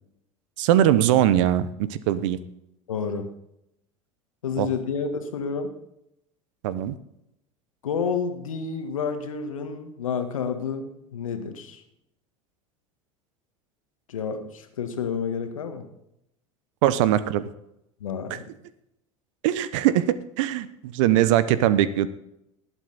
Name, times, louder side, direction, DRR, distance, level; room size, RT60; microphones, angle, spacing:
voice 1, 0.6-2.4 4.6-4.7 6.6-6.9 16.8-17.4 18.3-18.4 19.4-22.1, right 12 dB, 65° right, 15 dB, 0.9 m, -21 dB
voice 2, 2.9-3.3 4.4-5.7 7.8-11.8 14.1-15.8 18.0-18.4, left 6 dB, 80° left, 7 dB, 1.8 m, -30 dB
19.0 x 8.2 x 4.2 m, 0.81 s
hypercardioid pair, 80°, 17 cm